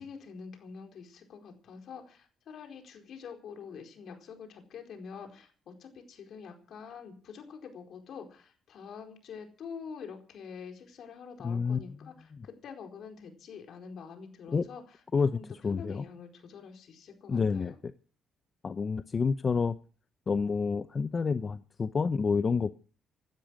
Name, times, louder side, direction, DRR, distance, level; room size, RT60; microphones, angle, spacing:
voice 1, 0.0-17.7, left 6 dB, 70° left, 4 dB, 4.5 m, -46 dB
voice 2, 11.4-12.0 12.3-12.5 14.5-14.6 15.1-16.0 17.3-17.9 18.6-19.8 20.3-22.7, left 5 dB, 40° left, 12 dB, 0.7 m, -29 dB
17.0 x 12.5 x 6.4 m, 0.41 s
cardioid pair, 90°, 0 cm